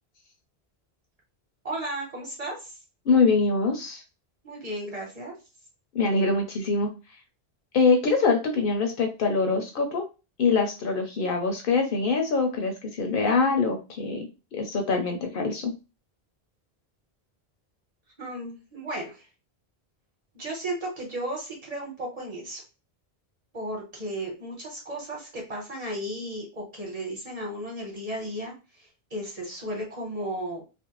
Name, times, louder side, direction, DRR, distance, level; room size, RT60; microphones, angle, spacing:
voice 1, 1.6-2.7 4.4-5.3 18.2-19.3 20.3-22.6 23.5-30.6, right 1 dB, 40° right, -1 dB, 1.0 m, -34 dB
voice 2, 3.1-4.0 5.9-6.9 7.7-10.0 10.4-14.3 14.5-15.7, left 4 dB, 65° left, 4 dB, 0.7 m, -24 dB
2.5 x 2.1 x 2.9 m, 0.29 s
omnidirectional pair, 1.1 m